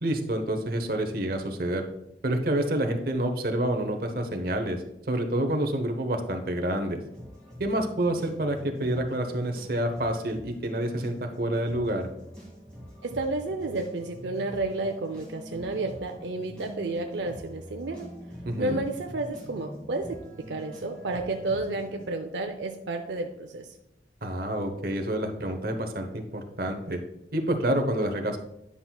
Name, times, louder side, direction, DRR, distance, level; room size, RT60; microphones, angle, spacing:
voice 1, 0.0-1.8 2.2-7.0 7.6-12.1 18.4-18.8 24.2-27.0 27.3-28.4, right 1 dB, 55° right, 4 dB, 0.9 m, -28 dB
sound 1, 7.1-22.1, equal, 5° left, 2.2 m, -45 dB
voice 2, 13.0-18.1 18.6-20.2 20.5-23.7, right 2 dB, 80° right, 4 dB, 0.6 m, -31 dB
9.9 x 5.8 x 2.3 m, 0.84 s
head